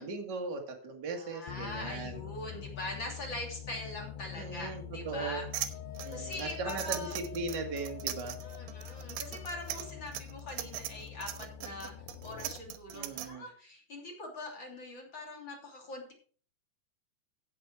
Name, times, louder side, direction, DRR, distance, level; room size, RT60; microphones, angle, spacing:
voice 1, 0.0-2.2 4.3-5.5 6.0-8.4 12.9-13.5, right 4 dB, 50° right, 3 dB, 1.2 m, -38 dB
voice 2, 1.2-5.5 6.1-7.2 8.4-11.9 12.2-16.1, left 2 dB, 30° left, 1 dB, 3.2 m, -42 dB
sound 1, 1.5-12.8, left 10 dB, 80° left, 2.0 m, -45 dB
sound 2, 5.5-13.3, right 13 dB, 85° right, 3.1 m, -39 dB
Wind instrument woodwind instrument, 5.7-10.1, left 13 dB, 55° left, 3.5 m, -49 dB
15.5 x 6.1 x 4.8 m, 0.41 s
omnidirectional pair, 5.0 m